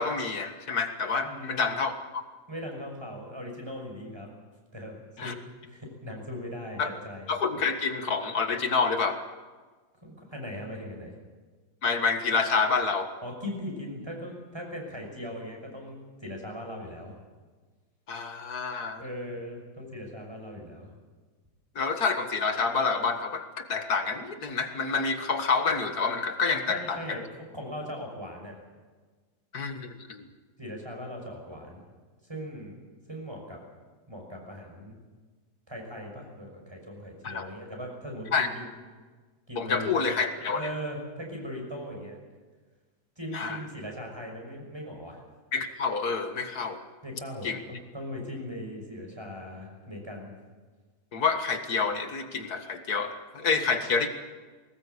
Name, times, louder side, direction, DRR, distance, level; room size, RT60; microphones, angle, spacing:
voice 1, 0.0-2.2 5.2-5.3 6.8-6.9 7.3-9.2 11.8-13.1 18.1-19.1 21.8-27.2 29.5-30.3 37.2-37.5 38.3-38.5 39.6-40.7 43.3-43.6 45.5-46.8 47.4-47.6 51.1-54.1, left 4 dB, 70° left, 7 dB, 2.2 m, -28 dB
voice 2, 1.2-1.7 2.5-4.3 4.7-5.3 5.6-7.3 10.0-11.2 13.2-17.1 19.0-20.9 26.7-28.6 30.6-31.8 32.3-32.8 33.1-33.6 34.1-34.9 35.7-38.7 39.5-39.9 40.4-42.2 43.2-45.2 47.0-50.3, equal, 15° right, 1 dB, 6.0 m, -39 dB
21.0 x 19.0 x 8.3 m, 1.4 s
omnidirectional pair, 1.7 m